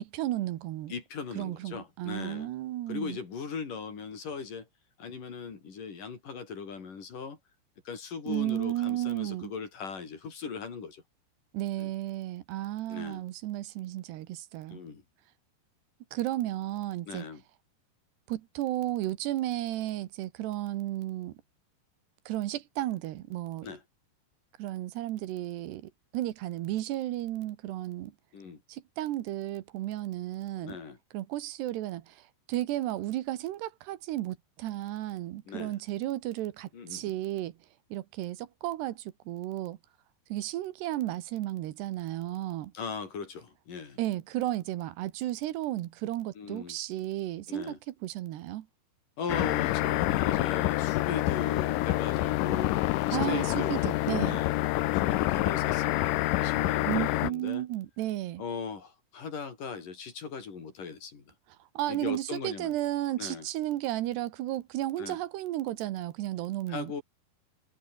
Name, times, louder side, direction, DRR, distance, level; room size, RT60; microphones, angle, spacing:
voice 1, 0.0-0.9 1.4-3.2 8.3-9.5 11.5-14.8 16.1-17.3 18.3-21.4 22.3-23.7 24.6-28.1 28.7-30.8 31.1-37.6 37.9-39.8 40.3-42.7 44.0-47.7 48.0-48.7 53.1-54.4 56.9-58.4 61.6-66.9, right 14 dB, 80° right, 3.3 m, -33 dB
voice 2, 0.9-2.5 2.9-4.7 5.0-7.4 7.9-11.0 11.8-11.9 12.9-13.2 14.7-15.0 17.1-17.4 23.6-23.8 28.3-28.6 30.6-31.0 35.5-35.8 36.7-37.1 42.7-44.0 46.4-46.8 47.5-47.8 49.2-52.7 53.1-53.9 54.2-54.6 54.9-57.7 58.4-61.3 61.9-62.7 63.2-63.5 65.0-65.2 66.7-67.0, left 5 dB, 50° left, 5.4 m, -39 dB
sound 1, 49.3-57.3, left 17 dB, 85° left, 1.9 m, -27 dB
omnidirectional pair, 4.8 m